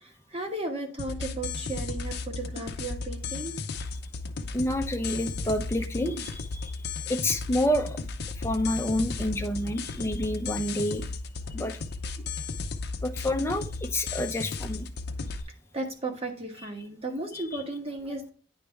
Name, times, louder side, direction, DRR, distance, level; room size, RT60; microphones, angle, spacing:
voice 1, 0.0-3.5 15.7-18.3, right 2 dB, 30° right, 3 dB, 1.2 m, -35 dB
sound 1, 1.0-15.4, left 4 dB, 60° left, 0.6 m, -35 dB
voice 2, 4.5-6.8 7.1-8.0 8.4-11.1 11.5-11.8 13.0-14.9 17.3-17.6, left 1 dB, 15° left, 5 dB, 0.6 m, -29 dB
9.5 x 3.3 x 3.4 m, 0.40 s
head